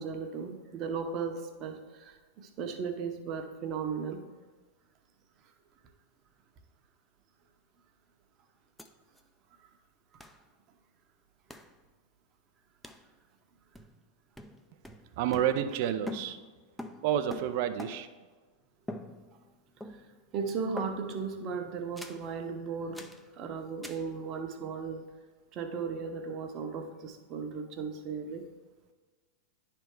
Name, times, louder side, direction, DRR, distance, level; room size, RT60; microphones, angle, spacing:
voice 1, 0.0-4.3 20.3-25.1 25.5-28.5, right 5 dB, 40° right, 5 dB, 0.9 m, -36 dB
sound 1, 8.8-8.9 9.2-9.3 10.2-10.4 11.5-11.8 12.8-13.1 13.7-14.1 14.4-18.2 18.9-19.5 19.8-20.3 20.8-21.3 22.0-22.3 22.9-23.3 23.8-24.1, left 1 dB, 5° left, 0.5 m, -44 dB
voice 2, 15.2-16.4 17.0-18.1, right 10 dB, 55° right, 10 dB, 0.5 m, -29 dB
10.0 x 3.4 x 4.6 m, 1.3 s
hypercardioid pair, 95°, 0 cm